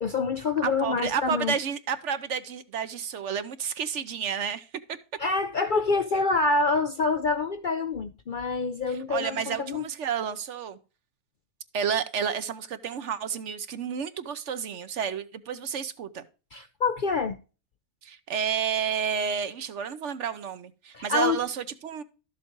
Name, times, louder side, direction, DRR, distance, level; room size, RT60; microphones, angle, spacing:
voice 1, 0.0-1.5 5.2-9.9 16.5-17.4 20.9-21.4, left 4 dB, 55° left, 0.6 m, -26 dB
voice 2, 0.6-4.7 8.9-10.8 11.7-16.2 18.0-22.0, right 7 dB, 65° right, 1.0 m, -31 dB
12.5 x 7.2 x 3.0 m
omnidirectional pair, 1.4 m